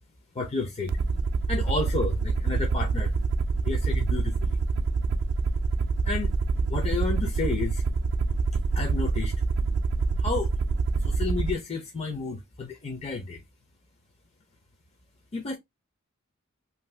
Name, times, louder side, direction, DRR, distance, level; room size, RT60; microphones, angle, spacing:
voice 1, 0.3-1.0 1.5-3.1 3.6-4.6 6.1-6.3 6.7-7.8 8.7-9.3 10.2-10.5 11.0-13.4 15.3-15.6, left 3 dB, 30° left, 0.5 m, -31 dB
Aircraft, 0.9-11.5, right 4 dB, 55° right, 0.3 m, -26 dB
2.6 x 2.4 x 3.1 m
head